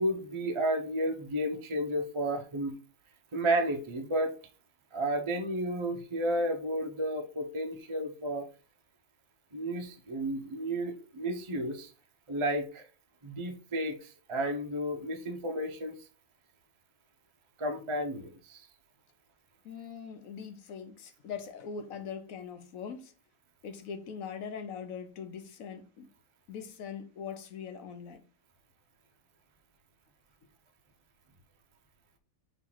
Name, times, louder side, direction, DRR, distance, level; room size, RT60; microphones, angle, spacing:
voice 1, 0.0-2.7 3.3-4.3 4.9-8.5 9.5-11.9 12.3-12.8 13.2-16.0 17.6-18.7, right 1 dB, 30° right, 0.5 m, -32 dB
voice 2, 19.6-23.1 23.6-26.1 26.5-28.2, left 6 dB, 55° left, 1.1 m, -41 dB
6.9 x 4.1 x 4.1 m
omnidirectional pair, 2.2 m